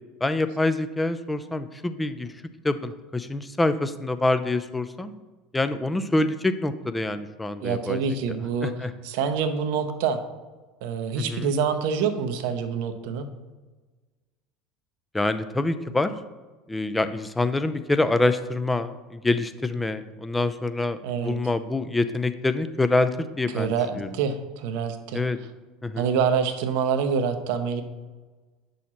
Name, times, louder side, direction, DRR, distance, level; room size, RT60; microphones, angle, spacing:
voice 1, 0.2-2.3 2.6-5.1 5.5-8.0 8.6-8.9 11.1-11.5 15.1-16.1 16.7-24.1 25.1-25.4 25.8-26.1, left 2 dB, 10° left, 11 dB, 0.5 m, -26 dB
voice 2, 7.6-8.7 9.0-10.2 10.8-13.3 21.0-21.3 23.5-25.2 26.0-27.8, right 6 dB, 60° right, 8 dB, 0.7 m, -26 dB
8.9 x 6.3 x 2.9 m, 1.3 s
figure-of-eight pair, 75°, 0 cm